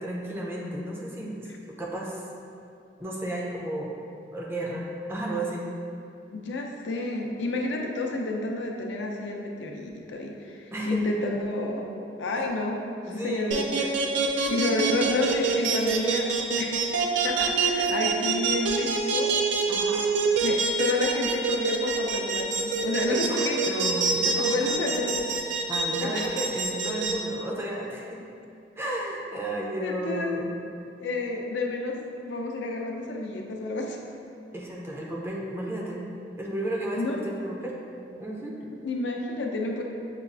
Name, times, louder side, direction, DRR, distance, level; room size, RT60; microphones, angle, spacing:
voice 1, 0.0-2.2 3.0-4.0 4.3-5.7 10.7-11.0 13.1-13.6 19.7-20.1 23.1-25.0 25.7-28.2 28.8-30.5 34.5-36.0 36.4-37.8 38.2-38.6, right 1 dB, 15° right, -3 dB, 0.4 m, -33 dB
voice 2, 6.3-11.9 12.2-12.8 13.1-13.9 14.3-16.3 16.6-16.8 17.2-19.4 20.4-23.6 24.4-25.1 26.0-26.3 29.8-30.4 31.0-32.0 32.2-34.0 37.0-37.2 38.6-39.8, left 2 dB, 80° left, 1 dB, 0.5 m, -30 dB
sound 1, 13.5-27.1, right 5 dB, 85° right, 0.4 m, -25 dB
6.5 x 2.3 x 2.4 m, 2.6 s
head